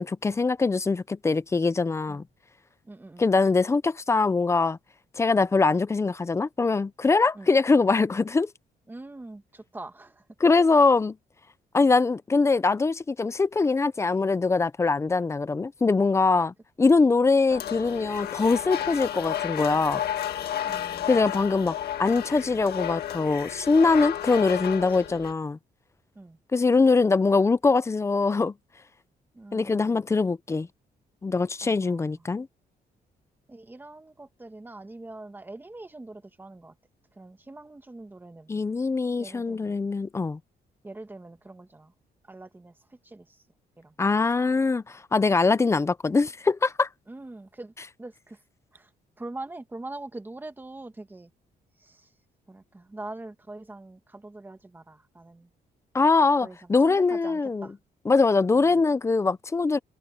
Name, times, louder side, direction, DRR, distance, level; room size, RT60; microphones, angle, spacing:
voice 1, 0.0-2.2 3.2-4.8 5.2-8.5 10.4-11.2 11.7-20.0 21.1-21.7 22.0-25.6 26.5-28.5 29.5-30.7 31.2-32.5 38.5-40.4 44.0-46.9 55.9-57.7 58.1-59.8, left 4 dB, 15° left, 0.5 m, -23 dB
voice 2, 2.8-3.3 7.3-7.5 8.9-10.2 20.6-21.3 24.5-24.6 24.9-25.3 26.1-26.4 29.3-30.0 31.6-32.3 33.5-36.7 37.2-38.6 39.2-39.7 40.8-41.9 42.2-43.4 43.8-44.0 47.1-47.7 48.0-48.4 48.7-48.9 49.2-51.3 51.8-52.1 52.5-55.5 56.4-57.7 58.5-58.8, right 2 dB, 10° right, 1.5 m, -43 dB
sound 1, 17.5-25.3, left 11 dB, 80° left, 1.8 m, -32 dB
cardioid pair, 170°, 16 cm